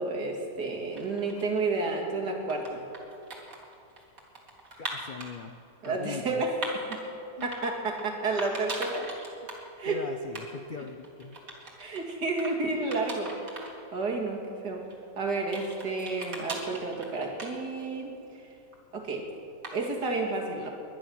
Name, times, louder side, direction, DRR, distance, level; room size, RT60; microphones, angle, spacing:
voice 1, 0.0-2.8 5.8-7.0 7.4-9.1 9.8-10.0 11.8-13.6 13.9-14.8 15.2-18.5 18.9-19.3 19.7-20.7, right 3 dB, 70° right, 1 dB, 2.7 m, -31 dB
sound 1, 0.7-1.7 2.3-5.3 5.8-7.0 7.4-8.1 8.4-9.7 9.9-10.0 10.3-10.5 10.7-12.0 12.4-12.5 12.9-13.7 14.1-14.2 14.9-18.0 18.3-19.0 19.6-20.0, right 2 dB, 50° right, 2.7 m, -40 dB
voice 2, 4.8-5.6 5.8-6.4 7.4-7.5 8.7-8.8 9.8-11.4, left 5 dB, 55° left, 5 dB, 0.5 m, -40 dB
21.5 x 10.5 x 6.3 m, 2.8 s
omnidirectional pair, 1.8 m